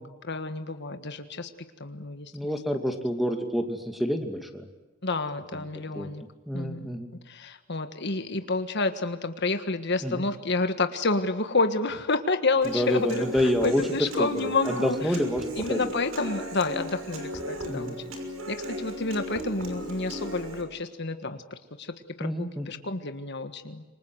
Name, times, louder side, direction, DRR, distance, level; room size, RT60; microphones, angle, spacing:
voice 1, 0.0-1.5 1.8-2.6 5.0-6.2 6.5-6.9 7.2-15.0 15.5-18.0 18.5-23.8, left 3 dB, 55° left, 8 dB, 1.6 m, -29 dB
voice 2, 2.3-4.7 5.9-6.1 6.5-7.1 10.0-10.2 12.7-13.8 14.2-15.9 17.7-17.9 22.2-22.7, equal, ahead, 5 dB, 2.6 m, -28 dB
Human voice / Acoustic guitar, 12.6-20.6, equal, 80° right, 6.1 m, -36 dB
27.5 x 25.5 x 8.0 m, 1.2 s
head